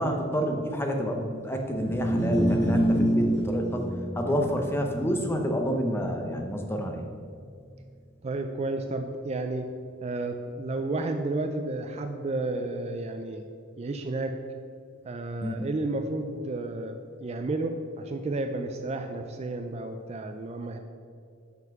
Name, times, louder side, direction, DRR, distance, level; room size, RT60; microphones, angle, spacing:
voice 1, 0.0-3.9 4.1-7.1 15.4-15.6, equal, 10° left, 3 dB, 0.6 m, -28 dB
sound 1, 1.7-8.0, equal, 55° left, 1.9 m, -29 dB
voice 2, 8.2-9.7 10.0-13.5 13.8-14.4 15.0-20.8, right 2 dB, 30° right, 6 dB, 0.3 m, -32 dB
5.8 x 5.4 x 5.9 m, 2.3 s
head